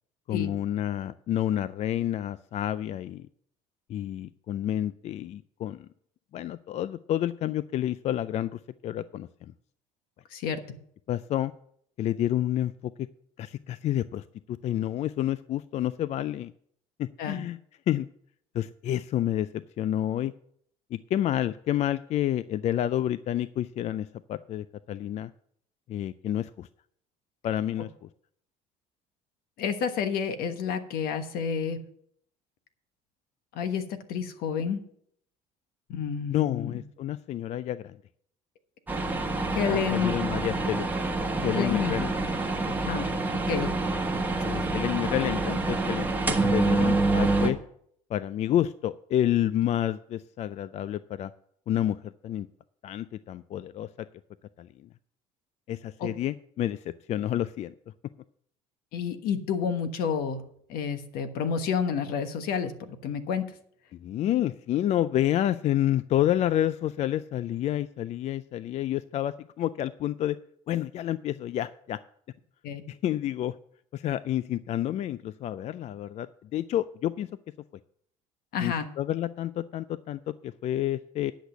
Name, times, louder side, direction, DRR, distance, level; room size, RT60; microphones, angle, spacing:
voice 1, 0.3-3.3 3.9-5.9 6.3-9.3 11.1-11.5 12.0-13.1 13.4-16.5 17.0-17.6 17.9-18.1 18.5-20.3 20.9-25.3 25.9-26.7 27.4-27.9 36.3-38.0 39.6-40.9 41.4-42.1 42.5-42.6 43.6-43.7 44.4-47.6 48.1-51.3 51.7-52.5 52.8-54.1 54.6-54.7 55.7-56.8 57.1-57.7 63.9-70.4 70.7-72.0 72.9-73.6 73.9-77.3 78.6-81.3, left 12 dB, 45° left, 16 dB, 0.4 m, -29 dB
voice 2, 29.6-31.8 33.5-34.8 35.9-36.8 39.5-40.1 41.5-42.0 42.9-43.1 43.5-43.7 44.5-44.7 56.0-56.1 58.9-60.4 60.7-63.4 72.6-72.8 78.5-78.9, left 7 dB, 70° left, 9 dB, 1.3 m, -29 dB
sound 1, 38.9-47.5, right 2 dB, 10° right, 1.2 m, -27 dB
10.0 x 6.4 x 6.9 m, 0.67 s
cardioid pair, 115°, 16 cm